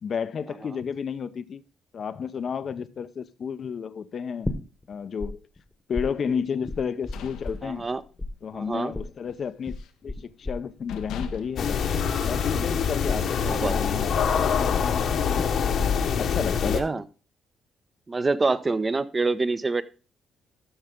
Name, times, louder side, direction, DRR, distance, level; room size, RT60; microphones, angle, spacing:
voice 1, 0.0-1.6 1.9-5.4 5.9-7.9 8.4-9.7 10.0-11.8 12.2-15.5 16.2-17.0, left 6 dB, 50° left, 0.6 m, -32 dB
sound 1, 4.4-5.3 5.6-7.9 8.2-15.8 16.1-16.6, left 2 dB, 15° left, 1.1 m, -34 dB
sound 2, 6.8-8.3 8.7-9.0 9.3-10.1 10.5-10.6 10.9-12.7, left 8 dB, 85° left, 0.8 m, -41 dB
voice 2, 7.6-8.0 8.5-8.9 13.4-14.0 16.6-17.0 18.1-19.8, right 3 dB, 25° right, 0.7 m, -26 dB
sound 3, 11.6-16.8, left 7 dB, 65° left, 1.2 m, -25 dB
12.5 x 5.5 x 3.7 m
cardioid pair, 90°, 0 cm